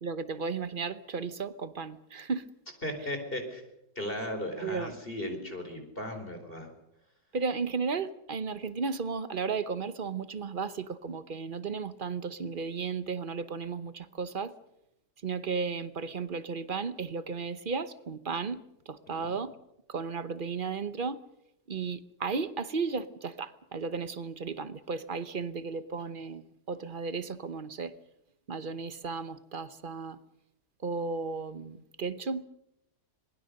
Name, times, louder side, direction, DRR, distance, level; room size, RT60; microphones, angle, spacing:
voice 1, 0.0-2.5 4.6-4.9 7.3-14.5 15.2-18.6 18.9-19.5 19.9-21.2 21.7-27.9 28.5-30.2 30.8-32.4, right 5 dB, 40° right, 0.9 m, -34 dB
voice 2, 2.8-3.6 4.0-6.7 19.1-19.3, left 1 dB, 30° left, 4.6 m, -36 dB
26.0 x 20.5 x 6.6 m
omnidirectional pair, 1.8 m